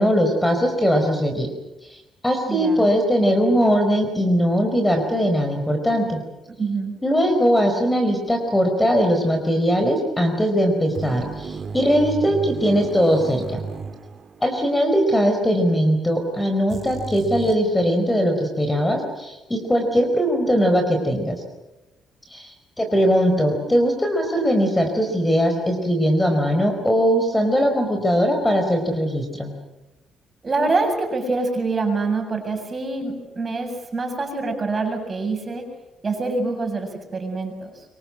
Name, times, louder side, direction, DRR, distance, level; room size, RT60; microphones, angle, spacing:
voice 1, 0.0-1.5 2.2-6.2 7.0-13.6 14.4-21.4 22.3-29.5, equal, 10° left, 6 dB, 4.8 m, -20 dB
voice 2, 2.5-2.9 6.6-6.9 30.4-35.7 36.0-37.8, right 3 dB, 30° right, 4 dB, 7.6 m, -25 dB
sound 1, 10.9-14.7 15.0-15.1 16.7-17.6, right 5 dB, 50° right, 1.9 m, -33 dB
25.5 x 24.5 x 7.7 m, 1.0 s
cardioid pair, 90°, 0 cm